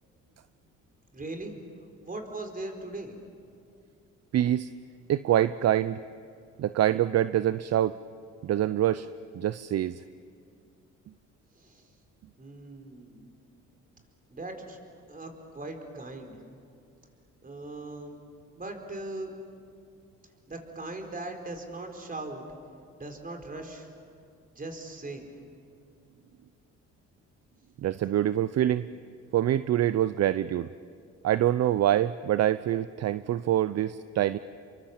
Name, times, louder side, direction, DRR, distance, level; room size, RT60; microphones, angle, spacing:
voice 1, 1.1-1.5 2.0-3.2 11.6-11.9 12.4-13.3 14.3-14.8 15.1-16.4 17.4-18.2 18.5-19.3 20.5-22.4 23.0-23.9 24.5-25.2, right 2 dB, 30° right, 3 dB, 4.4 m, -39 dB
voice 2, 4.3-4.7 5.1-6.0 6.6-8.0 8.4-9.1 9.3-10.0 27.8-28.9 29.3-30.7 31.2-34.4, right 12 dB, 60° right, 14 dB, 0.6 m, -25 dB
29.0 x 23.5 x 7.3 m, 2.3 s
cardioid pair, 90°, 30 cm